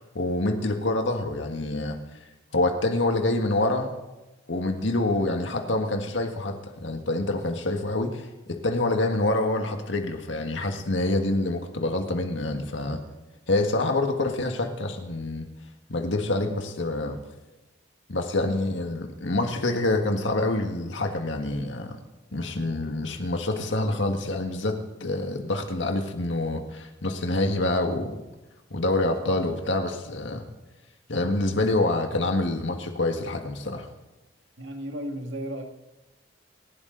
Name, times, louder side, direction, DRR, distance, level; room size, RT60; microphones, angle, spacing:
voice 1, 0.2-2.0 2.5-3.9 4.5-13.0 13.5-15.5 15.9-17.2 18.1-22.0 22.3-28.2 28.7-30.4 31.1-33.9, left 2 dB, 80° left, 4 dB, 1.8 m, -26 dB
voice 2, 34.6-35.6, equal, 90° right, 4 dB, 2.2 m, -34 dB
28.0 x 12.0 x 4.0 m, 1.1 s
head